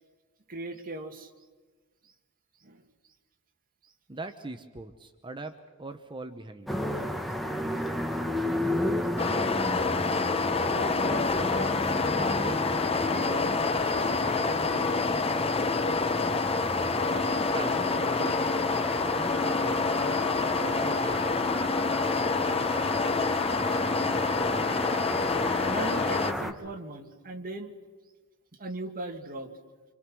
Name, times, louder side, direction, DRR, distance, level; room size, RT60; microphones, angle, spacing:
voice 1, 0.5-1.3 2.6-2.8 10.7-12.7 13.0-13.6 13.9-14.9 25.6-27.8 28.6-29.5, right 2 dB, 40° right, 4 dB, 2.1 m, -39 dB
voice 2, 4.1-6.7 17.1-18.6 19.1-21.6, right 2 dB, 25° right, 7 dB, 1.0 m, -41 dB
sound 1, 6.7-26.5, equal, ahead, 1.4 m, -33 dB
sound 2, 9.2-26.3, left 4 dB, 25° left, 0.7 m, -27 dB
sound 3, 18.5-23.7, left 2 dB, 80° left, 2.7 m, -51 dB
27.0 x 25.5 x 6.2 m, 1.4 s
head